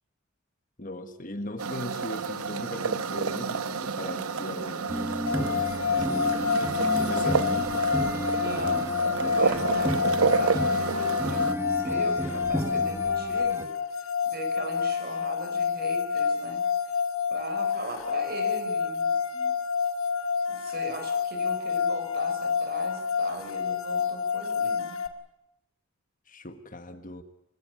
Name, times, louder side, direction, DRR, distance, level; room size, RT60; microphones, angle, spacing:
voice 1, 0.8-7.9 26.3-27.2, left 1 dB, 35° left, 1.5 m, -39 dB
sound 1, 1.6-11.5, right 5 dB, 80° right, 1.1 m, -30 dB
sound 2, 4.9-13.6, equal, 10° right, 1.7 m, -33 dB
sound 3, 5.3-25.1, left 6 dB, 70° left, 2.1 m, -28 dB
voice 2, 8.3-13.7 14.0-17.0 17.3-19.5 20.5-25.0, right 1 dB, 45° right, 5.6 m, -39 dB
25.5 x 17.0 x 9.7 m
head